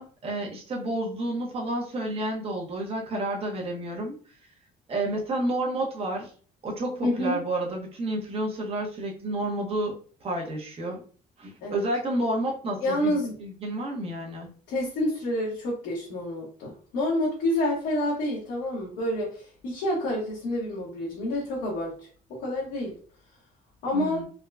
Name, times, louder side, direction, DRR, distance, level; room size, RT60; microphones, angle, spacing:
voice 1, 0.0-4.1 4.9-6.3 6.6-9.9 10.2-11.0 11.4-14.5 23.9-24.3, right 1 dB, 35° right, -1 dB, 0.8 m, -30 dB
voice 2, 7.0-7.4 11.6-11.8 12.8-13.3 14.7-21.9 22.3-22.9 23.8-24.2, left 1 dB, 90° left, -5 dB, 1.0 m, -28 dB
3.6 x 2.2 x 2.3 m, 0.42 s
cardioid pair, 110°, 17 cm